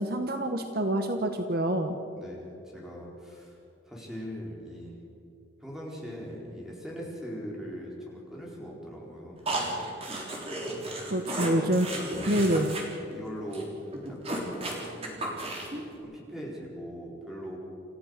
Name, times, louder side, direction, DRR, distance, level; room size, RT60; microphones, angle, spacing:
voice 1, 0.0-2.0 11.1-11.9 12.3-12.7, right 1 dB, 50° right, 6 dB, 1.2 m, -26 dB
voice 2, 2.2-3.6 3.9-5.0 5.6-9.4 11.1-11.5 13.1-15.4 16.0-17.6, equal, ahead, -3 dB, 4.6 m, -41 dB
sound 1, 9.5-12.8 13.1-13.2 13.5-13.6 13.9-15.8, right 2 dB, 30° right, 3.6 m, -34 dB
28.0 x 14.5 x 6.7 m, 2.8 s
head